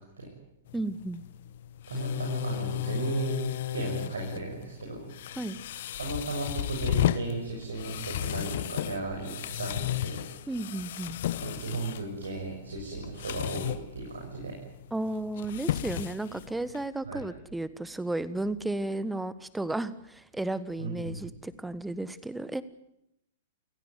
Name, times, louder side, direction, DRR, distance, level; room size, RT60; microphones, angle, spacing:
sound 1, 0.7-16.9, left 12 dB, 55° left, 1.2 m, -34 dB
voice 1, 0.7-1.2 5.4-5.6 10.5-11.2 14.9-22.6, right 2 dB, 5° right, 16 dB, 1.4 m, -33 dB
voice 2, 1.9-3.4 3.7-5.1 6.0-10.2 11.4-14.6 17.1-17.3 20.8-21.2, right 3 dB, 70° right, 0 dB, 6.9 m, -35 dB
28.5 x 17.0 x 9.5 m, 0.82 s
figure-of-eight pair, 105°, 0 cm